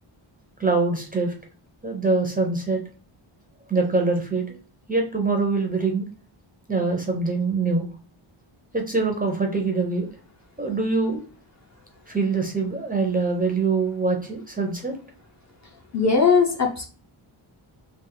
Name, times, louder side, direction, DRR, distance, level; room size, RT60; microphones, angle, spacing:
voice 1, 0.6-1.3 1.8-2.8 3.7-4.5 4.9-6.0 6.7-7.9 8.7-10.1 10.6-11.2 12.1-15.0, right 3 dB, 20° right, 2 dB, 0.5 m, -24 dB
voice 2, 15.9-16.9, left 5 dB, 35° left, 2 dB, 0.6 m, -19 dB
3.3 x 2.4 x 3.7 m, 0.38 s
wide cardioid pair, 170°, 50 cm